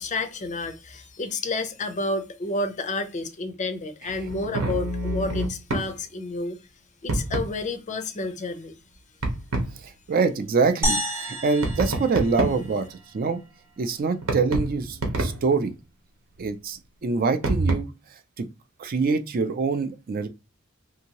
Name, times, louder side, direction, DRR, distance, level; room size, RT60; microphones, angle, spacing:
voice 1, 0.0-6.6 7.0-8.7, left 2 dB, 35° left, 0.5 m, -30 dB
sound 1, 4.1-5.9 7.1-7.5 9.2-9.7 11.6-12.7 14.2-15.5 17.4-17.8, right 2 dB, 85° right, 0.9 m, -27 dB
voice 2, 10.1-13.4 13.8-15.7 16.4-17.9 18.4-18.5 18.8-20.3, right 4 dB, 45° right, 0.4 m, -25 dB
sound 2, 10.8-13.3, equal, 15° right, 0.8 m, -30 dB
2.7 x 2.6 x 2.8 m
head